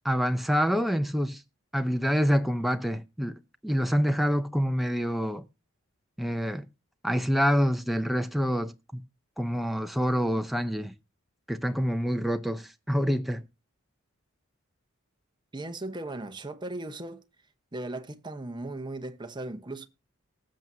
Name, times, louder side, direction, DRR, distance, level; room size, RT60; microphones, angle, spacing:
voice 1, 0.0-1.4 1.7-5.5 6.2-6.7 7.0-9.0 9.4-10.9 11.5-13.4, equal, ahead, 0.6 m, -27 dB
voice 2, 15.5-17.2 17.7-19.9, right 2 dB, 20° right, 0.9 m, -37 dB
19.5 x 7.5 x 2.7 m
head